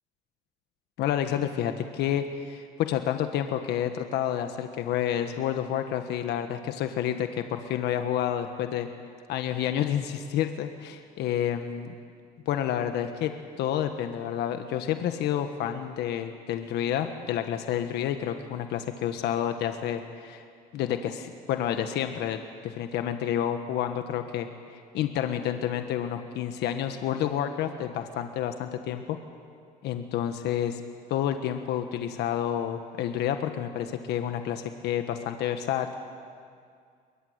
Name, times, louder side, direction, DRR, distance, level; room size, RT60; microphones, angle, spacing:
voice 1, 1.0-8.9 9.3-11.9 12.4-13.3 13.6-20.4 20.7-22.4 22.6-29.2 29.8-30.8 31.1-36.0, left 10 dB, 80° left, 7 dB, 1.5 m, -29 dB
23.0 x 21.5 x 9.7 m, 2.2 s
cardioid pair, 110°, 17 cm